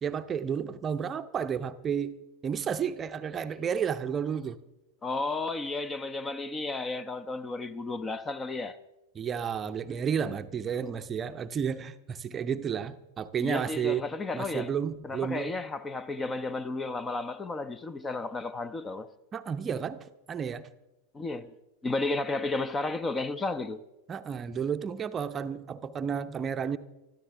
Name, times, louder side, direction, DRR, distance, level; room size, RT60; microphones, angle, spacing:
voice 1, 0.0-4.6 9.1-14.1 14.3-15.5 19.3-20.7 24.1-26.8, right 7 dB, 25° right, 0.7 m, -32 dB
voice 2, 5.0-8.8 13.4-14.7 15.0-19.1 21.1-21.5 21.8-23.8, left 3 dB, 15° left, 0.7 m, -33 dB
25.5 x 13.5 x 3.4 m
figure-of-eight pair, 90°, 0 cm